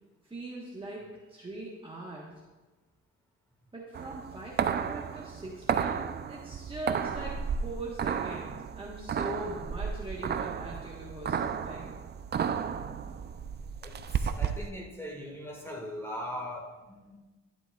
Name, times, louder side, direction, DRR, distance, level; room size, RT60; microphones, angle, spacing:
voice 1, 0.2-2.3 3.7-12.0, right 2 dB, 15° right, -4 dB, 1.2 m, -41 dB
sound 1, 3.9-14.7, right 7 dB, 35° right, 0.4 m, -33 dB
voice 2, 13.8-17.2, equal, 10° left, -1 dB, 1.9 m, -40 dB
11.5 x 7.7 x 2.3 m, 1.2 s
cardioid pair, 90°, 30 cm